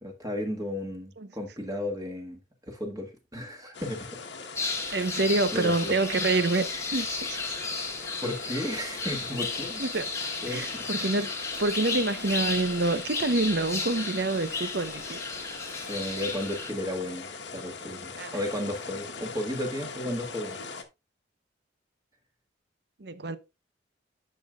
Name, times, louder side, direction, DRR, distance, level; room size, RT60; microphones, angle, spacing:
voice 1, 0.0-4.2 5.5-6.0 8.2-9.8 10.4-10.8 15.9-17.3 17.5-20.6, left 1 dB, 20° right, 1.7 m, -34 dB
sound 1, 3.7-20.8, left 4 dB, 70° left, 1.3 m, -41 dB
sound 2, 4.6-16.7, left 3 dB, 15° left, 1.3 m, -34 dB
voice 2, 4.9-7.6 9.8-10.1 10.5-11.3 11.6-15.2 18.2-18.4 23.0-23.4, right 2 dB, 60° right, 0.8 m, -27 dB
11.0 x 6.5 x 2.4 m
head